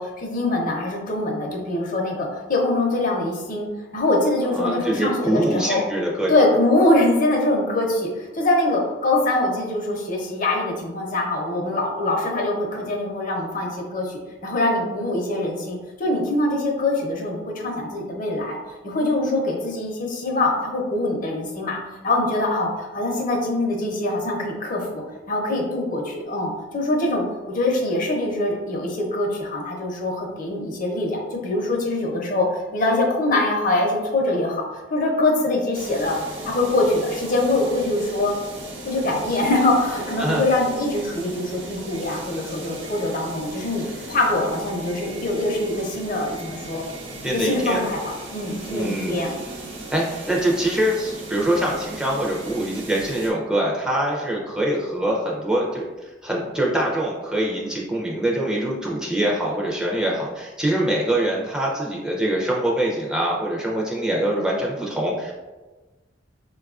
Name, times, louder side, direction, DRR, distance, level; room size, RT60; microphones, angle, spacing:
voice 1, 0.0-3.7 3.9-5.8 6.3-18.6 18.8-21.8 22.0-36.2 36.4-38.3 38.9-46.8 47.3-49.4, left 2 dB, 45° left, 0 dB, 0.6 m, -23 dB
voice 2, 4.5-6.3 40.2-40.4 47.2-47.8 48.7-49.3 49.9-65.3, right 1 dB, 5° right, -3 dB, 0.4 m, -24 dB
sound 1, 35.7-53.3, right 2 dB, 90° right, 0.7 m, -37 dB
4.5 x 2.3 x 2.4 m, 1.2 s
head